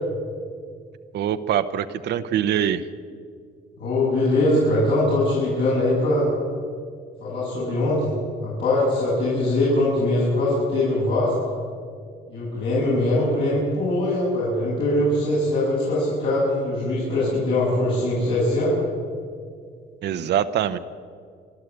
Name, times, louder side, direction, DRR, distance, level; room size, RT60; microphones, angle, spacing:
voice 1, 1.1-2.9 20.0-20.8, right 10 dB, 70° right, 10 dB, 0.9 m, -23 dB
voice 2, 3.8-6.3 7.2-8.1 8.4-11.3 12.3-18.7, left 1 dB, 75° left, -8 dB, 7.4 m, -22 dB
28.0 x 12.0 x 8.3 m, 2.1 s
cardioid pair, 125°, 18 cm